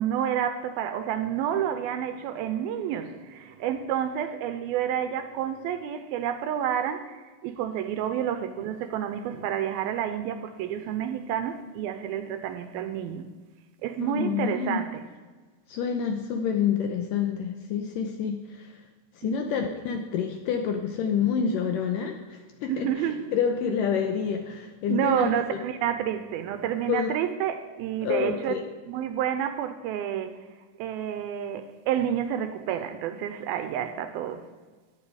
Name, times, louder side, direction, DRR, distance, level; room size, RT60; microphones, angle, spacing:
voice 1, 0.0-13.3 13.8-15.1 19.2-19.5 22.7-23.3 24.9-28.5 28.9-30.4 30.8-34.5, right 9 dB, 80° right, 2.4 m, -29 dB
voice 2, 14.0-14.9 15.7-18.8 19.2-23.0 23.3-25.6 26.9-27.1 28.0-28.6, left 7 dB, 75° left, 2.0 m, -28 dB
15.5 x 9.8 x 4.9 m
omnidirectional pair, 4.6 m